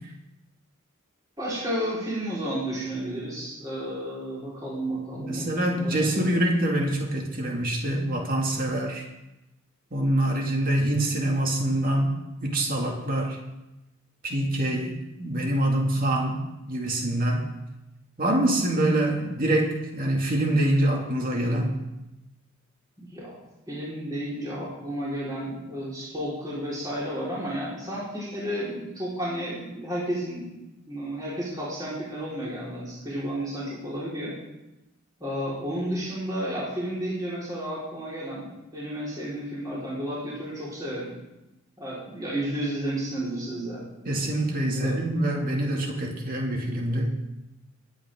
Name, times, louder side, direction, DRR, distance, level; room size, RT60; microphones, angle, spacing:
voice 1, 1.4-6.3 23.0-23.4 23.7-30.6 30.9-34.4 35.2-41.1 41.8-43.8 44.7-45.0, right 1 dB, 20° right, -8 dB, 4.5 m, -32 dB
voice 2, 5.2-9.1 9.9-12.1 12.4-13.4 14.2-16.4 16.7-17.5 18.2-21.7 44.0-47.1, right 1 dB, 45° right, 0 dB, 2.4 m, -25 dB
23.5 x 9.1 x 3.8 m, 0.96 s
head